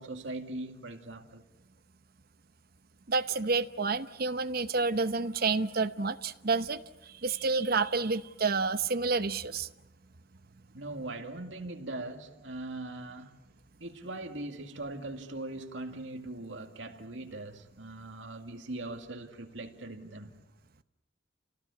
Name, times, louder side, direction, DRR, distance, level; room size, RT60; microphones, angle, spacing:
voice 1, 0.0-1.4 10.7-13.4 13.8-20.4, right 2 dB, 75° right, 2.2 m, -40 dB
voice 2, 3.1-6.8 7.2-9.7, right 4 dB, 55° right, 0.9 m, -29 dB
29.5 x 18.5 x 8.5 m
head